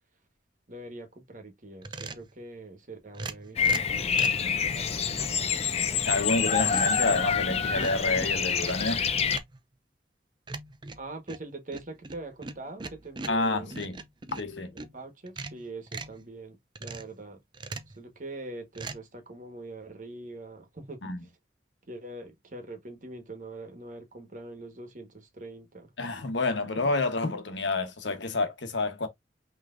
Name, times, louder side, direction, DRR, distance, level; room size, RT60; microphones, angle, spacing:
voice 1, 0.7-5.2 11.0-13.7 14.7-17.4 17.9-21.0 21.9-25.9, right 2 dB, 45° right, 1.3 m, -43 dB
sound 1, 1.8-2.3 3.1-4.5 5.1-5.4 6.0-6.5 6.7-8.9 9.3-9.6 10.5-14.9 15.3-16.2 16.8-17.2 17.5-18.0 18.7-19.0, right 3 dB, 25° right, 0.5 m, -40 dB
Bird vocalization bird call bird song, 3.6-9.4, left 6 dB, 35° left, 0.5 m, -27 dB
voice 2, 6.1-9.0 13.3-14.0 14.4-14.7 21.0-21.2 26.0-29.1, left 3 dB, 85° left, 1.1 m, -29 dB
5.7 x 3.2 x 2.5 m
head